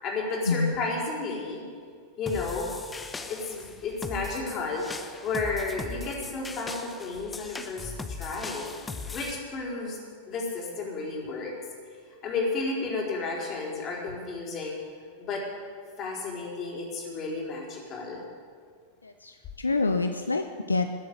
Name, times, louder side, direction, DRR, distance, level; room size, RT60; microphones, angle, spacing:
voice 1, 0.0-1.6 2.2-2.7 3.3-4.9 5.2-8.7 9.1-11.5 12.2-14.7 15.2-15.4 16.0-18.2, left 3 dB, 35° left, -2 dB, 4.3 m, -32 dB
sound 1, 2.3-9.3, left 4 dB, 15° left, 1.0 m, -39 dB
voice 2, 19.0-20.9, left 3 dB, 80° left, 7 dB, 0.7 m, -27 dB
20.0 x 7.8 x 8.2 m, 2.1 s
figure-of-eight pair, 90°, 0 cm